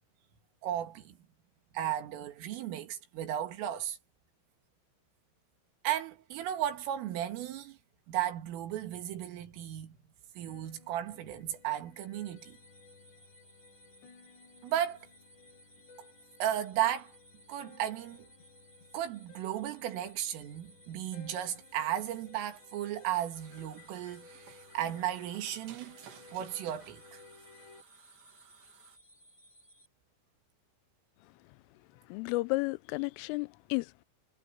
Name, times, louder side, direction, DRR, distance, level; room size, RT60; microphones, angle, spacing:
voice 1, 0.6-1.2 1.7-4.0 5.8-7.8 8.1-10.0 10.4-12.6 14.6-15.0 16.4-17.2 17.5-18.3 18.9-26.0 26.3-27.2, right 11 dB, 85° right, 4.9 m, -35 dB
sound 1, 10.5-27.8, left 4 dB, 60° left, 8.4 m, -58 dB
sound 2, 12.4-29.9, equal, 20° left, 4.1 m, -61 dB
sound 3, 23.3-29.0, right 9 dB, 65° right, 4.1 m, -57 dB
voice 2, 32.1-34.1, left 23 dB, 90° left, 3.2 m, -33 dB
omnidirectional pair, 5.7 m